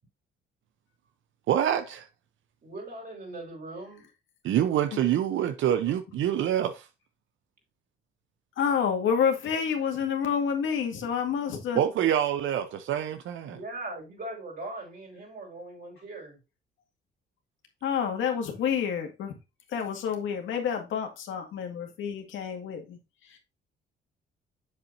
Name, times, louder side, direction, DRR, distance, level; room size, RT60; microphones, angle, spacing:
voice 1, 1.5-2.1 4.4-6.9 11.7-13.6, right 10 dB, 75° right, 0.8 m, -26 dB
voice 2, 2.6-4.1 13.4-16.4, right 2 dB, 50° right, 4.6 m, -40 dB
voice 3, 8.6-11.8 17.8-19.3 19.7-23.0 23.3-23.4, left 7 dB, 80° left, 2.1 m, -28 dB
7.2 x 7.1 x 2.7 m
cardioid pair, 90°, 20 cm